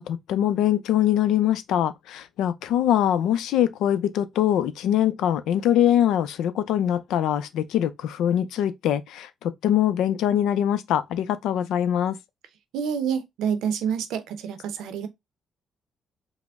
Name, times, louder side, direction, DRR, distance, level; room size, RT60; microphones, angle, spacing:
voice 1, 0.0-12.2, left 10 dB, 85° left, 0.4 m, -23 dB
voice 2, 12.7-15.1, right 7 dB, 85° right, 0.6 m, -28 dB
4.9 x 2.1 x 3.4 m
cardioid pair, 90°, 0 cm